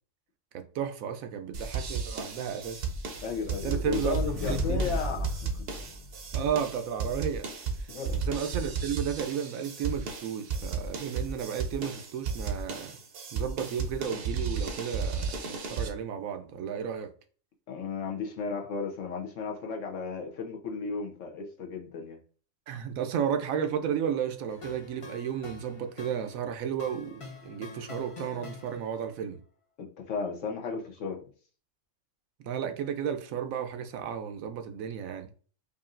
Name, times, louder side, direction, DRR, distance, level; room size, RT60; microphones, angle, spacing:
voice 1, 0.5-2.8 3.6-5.1 6.3-7.5 7.8-7.9 8.2-13.0 13.3-17.1 22.7-29.4 32.4-35.3, right 8 dB, 85° right, 1.0 m, -33 dB
sound 1, 1.5-15.9, right 5 dB, 55° right, 0.8 m, -34 dB
sound 2, 2.6-6.5, left 1 dB, 25° left, 1.2 m, -34 dB
voice 2, 3.2-5.8 7.9-8.2 17.7-22.2 29.8-31.2, left 5 dB, 70° left, 1.2 m, -35 dB
sound 3, 24.5-29.2, left 3 dB, 50° left, 0.4 m, -46 dB
5.0 x 2.7 x 2.5 m
omnidirectional pair, 1.4 m